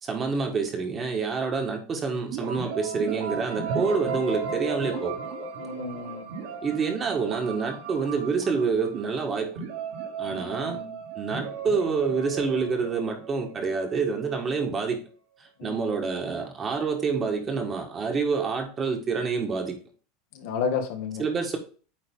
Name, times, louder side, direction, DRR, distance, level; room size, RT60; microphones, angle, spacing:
voice 1, 0.0-5.2 6.6-9.5 10.2-10.8 11.1-15.0 15.6-19.8 21.2-21.6, right 5 dB, 25° right, 4 dB, 1.5 m, -27 dB
sound 1, 2.3-14.0, right 5 dB, 70° right, 2.5 m, -35 dB
voice 2, 5.6-6.2 10.2-10.9 15.6-15.9 20.3-21.2, left 6 dB, 65° left, 5 dB, 1.3 m, -32 dB
8.8 x 3.8 x 3.7 m, 0.39 s
supercardioid pair, 140°, 0 cm